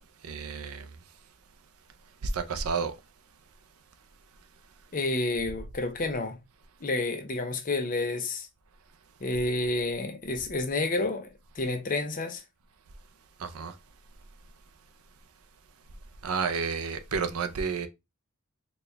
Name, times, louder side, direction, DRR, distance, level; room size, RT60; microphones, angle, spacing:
voice 1, 0.2-0.9 2.2-2.9 13.4-13.7 16.2-17.9, right 5 dB, 85° right, 0.5 m, -31 dB
voice 2, 4.9-6.4 6.8-8.5 9.2-12.4, left 2 dB, 40° left, 0.7 m, -30 dB
4.1 x 2.3 x 3.2 m
head